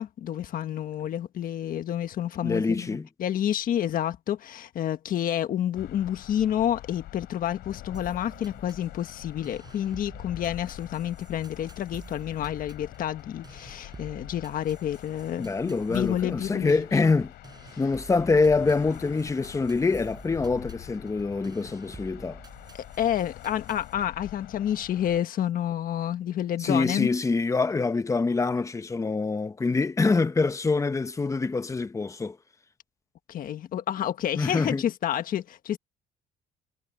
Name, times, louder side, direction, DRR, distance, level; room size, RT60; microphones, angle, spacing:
voice 1, 0.0-17.0 17.7-17.8 22.7-27.1 33.3-35.8, left 10 dB, 55° left, 1.4 m, -29 dB
voice 2, 2.4-3.1 15.4-17.3 17.8-22.4 26.6-32.4 34.3-34.8, left 4 dB, 20° left, 1.0 m, -25 dB
sound 1, 5.7-25.2, left 15 dB, 75° left, 3.6 m, -45 dB
sound 2, 7.9-23.9, right 4 dB, 25° right, 5.0 m, -50 dB
cardioid pair, 110°, 17 cm